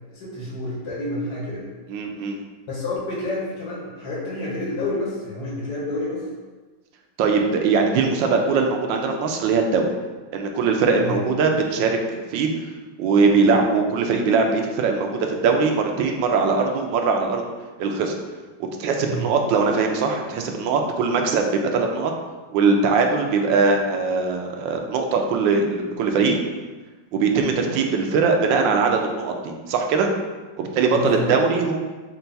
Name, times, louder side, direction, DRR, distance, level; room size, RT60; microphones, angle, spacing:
voice 1, 0.1-1.7 2.7-6.2 11.0-11.2 19.0-19.3 30.9-31.3, left 1 dB, 60° left, -5 dB, 1.8 m, -29 dB
voice 2, 1.9-2.4 7.2-9.9 10.3-12.0 12.3-12.5 13.0-17.4 17.8-18.1 18.6-22.1 22.5-26.3 27.1-30.1 30.6-31.8, right 4 dB, 90° right, 3 dB, 1.3 m, -21 dB
5.6 x 2.3 x 4.0 m, 1.3 s
omnidirectional pair, 2.0 m